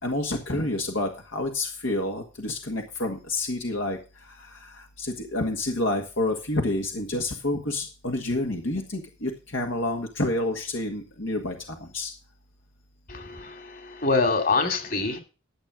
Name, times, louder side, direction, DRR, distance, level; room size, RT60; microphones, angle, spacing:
voice 1, 0.0-4.0 5.0-12.1, left 2 dB, 70° left, 2 dB, 1.8 m, -28 dB
voice 2, 13.1-15.2, left 3 dB, 45° left, 7 dB, 2.6 m, -25 dB
12.5 x 7.5 x 5.1 m, 0.32 s
head